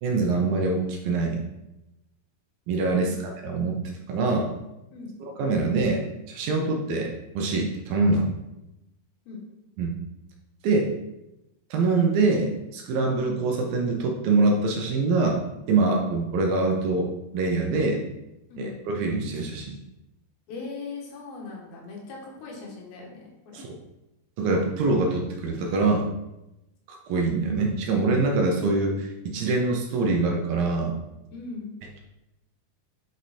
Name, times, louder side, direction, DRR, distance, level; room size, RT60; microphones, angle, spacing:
voice 1, 0.0-1.4 2.7-3.1 3.4-3.8 4.1-4.5 5.4-7.1 7.4-8.3 9.8-10.0 10.6-10.9 11.7-15.4 15.7-18.0 18.6-19.8 23.5-23.7 24.4-26.1 27.1-30.9, right 3 dB, 70° right, 1 dB, 2.5 m, -24 dB
voice 2, 20.5-23.7 31.3-31.7, left 4 dB, 70° left, -1 dB, 3.4 m, -39 dB
9.2 x 4.8 x 4.3 m, 0.93 s
omnidirectional pair, 4.6 m